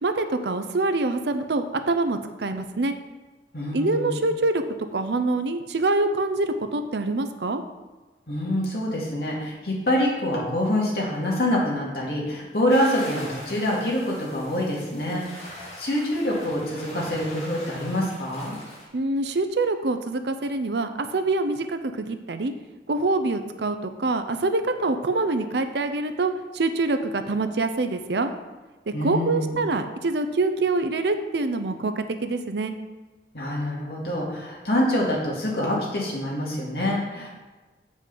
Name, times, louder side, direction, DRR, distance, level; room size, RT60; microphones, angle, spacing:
voice 1, 0.0-2.9 3.7-4.6 4.9-7.6 18.9-22.5 22.9-28.3 29.0-32.7, right 2 dB, 75° right, 8 dB, 0.6 m, -25 dB
voice 2, 3.5-4.3 8.3-18.6 28.9-29.6 33.3-37.3, left 1 dB, 60° left, -3 dB, 2.2 m, -26 dB
sound 1, 12.7-18.8, left 1 dB, 35° left, 2.0 m, -41 dB
7.6 x 5.3 x 5.4 m, 1.2 s
head